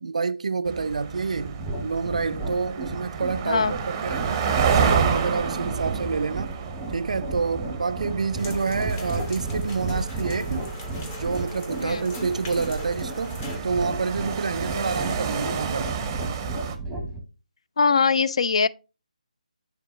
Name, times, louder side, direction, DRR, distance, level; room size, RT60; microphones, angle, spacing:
voice 1, 0.0-6.5 6.9-10.7 11.0-16.1, right 4 dB, 60° right, 0.4 m, -28 dB
sound 1, 0.7-16.8, right 6 dB, 20° right, 0.6 m, -30 dB
sound 2, 1.4-17.2, right 2 dB, ahead, 1.0 m, -34 dB
sound 3, 8.4-13.6, left 4 dB, 25° left, 1.0 m, -42 dB
voice 2, 17.8-18.7, left 5 dB, 50° left, 0.3 m, -21 dB
8.5 x 3.4 x 3.5 m
figure-of-eight pair, 150°, 4 cm